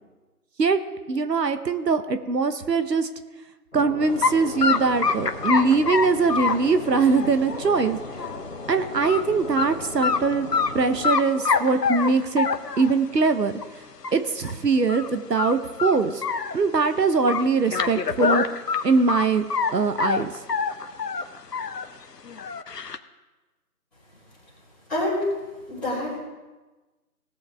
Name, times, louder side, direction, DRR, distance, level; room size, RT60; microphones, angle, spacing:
voice 1, 1.1-3.1 3.7-8.0 8.7-10.5 10.7-12.5 12.8-13.5 14.1-16.2 16.5-18.4 18.8-19.5 19.7-20.3, right 4 dB, 85° right, 10 dB, 1.1 m, -22 dB
sound 1, 3.7-11.1, left 2 dB, 50° left, 1.4 m, -37 dB
sound 2, 4.2-4.3 4.6-8.4 8.8-9.2 9.6-9.7 10.0-10.7 11.0-13.0 13.6-13.7 14.0-14.1 14.4-14.5 14.9-15.1 15.4-16.9 17.3-19.7 20.0-21.9 22.2-23.0, left 5 dB, 80° left, 0.9 m, -25 dB
voice 2, 24.9-25.3 25.7-26.2, left 1 dB, ahead, -19 dB, 3.1 m, -26 dB
19.5 x 7.3 x 3.5 m, 1.2 s
figure-of-eight pair, 175°, 48 cm